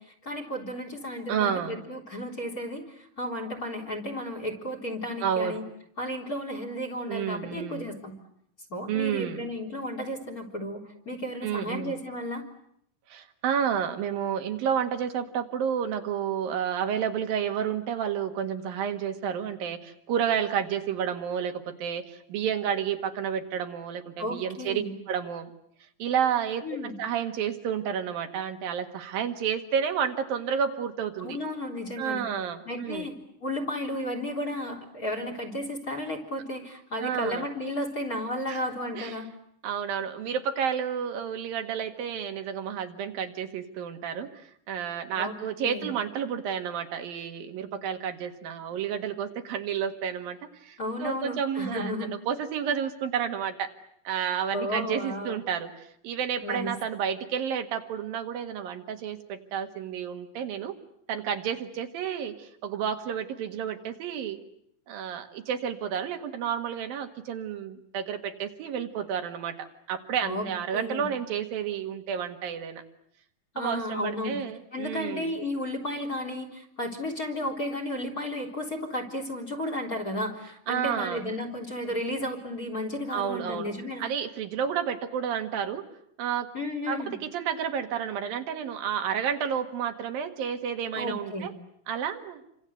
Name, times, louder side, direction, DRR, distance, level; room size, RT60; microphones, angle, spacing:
voice 1, 0.0-5.6 6.0-8.2 8.7-12.5 24.2-24.9 26.6-27.0 31.2-32.3 32.7-39.3 45.2-45.9 50.8-52.1 54.5-55.4 56.4-56.7 70.2-70.5 70.7-71.1 73.5-74.4 74.7-84.1 86.5-87.1 91.0-91.5, left 1 dB, 25° left, 7 dB, 3.8 m, -33 dB
voice 2, 1.3-1.8 5.2-5.6 7.1-7.9 8.9-9.4 11.4-12.0 13.1-25.5 26.0-31.4 32.0-33.1 37.0-37.5 38.5-38.6 38.9-39.2 39.6-53.7 54.1-60.8 61.1-64.4 64.9-72.8 73.6-75.3 80.7-81.2 83.1-83.7 84.0-85.8 86.2-86.5 86.9-91.5 91.9-92.4, right 8 dB, 80° right, 6 dB, 3.5 m, -31 dB
29.0 x 25.5 x 8.0 m, 0.71 s
omnidirectional pair, 4.0 m